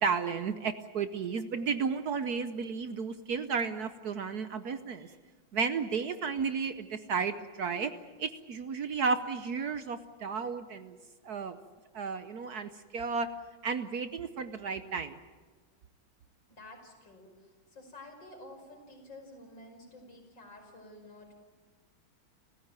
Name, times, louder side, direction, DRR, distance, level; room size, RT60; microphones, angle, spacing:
voice 1, 0.0-5.1 5.5-7.9 8.2-11.0 11.2-11.6 11.9-13.3 13.6-15.2, right 5 dB, 60° right, 10 dB, 1.2 m, -33 dB
voice 2, 16.5-21.3, left 2 dB, 65° left, 2 dB, 6.0 m, -51 dB
30.0 x 15.5 x 9.0 m, 1.4 s
omnidirectional pair, 2.2 m